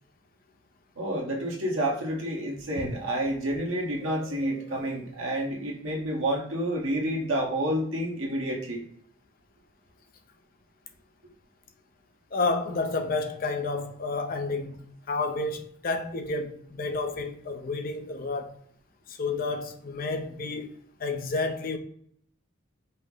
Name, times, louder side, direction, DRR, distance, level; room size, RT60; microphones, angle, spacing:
voice 1, 1.0-8.8, right 1 dB, 85° right, 1.2 m, -29 dB
voice 2, 4.0-4.5 12.3-18.6 19.2-20.8 21.0-21.8, left 3 dB, 45° left, 0.5 m, -30 dB
5.4 x 2.0 x 3.7 m
head